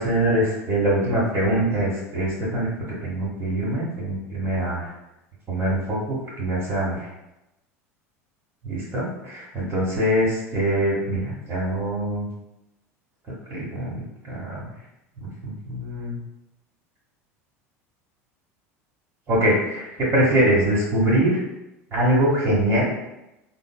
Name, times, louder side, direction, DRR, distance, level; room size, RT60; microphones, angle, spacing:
voice 1, 0.0-2.7 3.0-4.9 5.5-7.1 8.7-12.3 13.5-14.7 15.2-16.2 19.3-21.4 21.9-22.9, right 1 dB, 35° right, -8 dB, 1.0 m, -23 dB
3.3 x 2.1 x 2.3 m, 0.93 s
hypercardioid pair, 85°, 8 cm